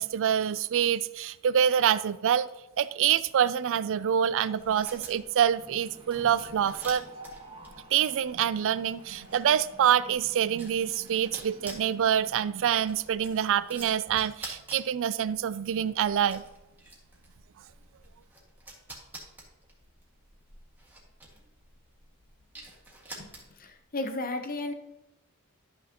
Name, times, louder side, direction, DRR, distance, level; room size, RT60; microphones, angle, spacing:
voice 1, 0.0-2.5 2.8-7.0 7.9-16.4, right 9 dB, 60° right, 16 dB, 0.4 m, -26 dB
Mechanisms, 2.8-3.4 3.7-12.4, right 1 dB, 25° right, 1.6 m, -51 dB
sound 1, 4.5-23.8, right 1 dB, 10° right, 1.9 m, -49 dB
voice 2, 23.2-24.7, left 2 dB, 40° left, 7 dB, 0.8 m, -34 dB
12.5 x 6.2 x 2.9 m, 0.96 s
head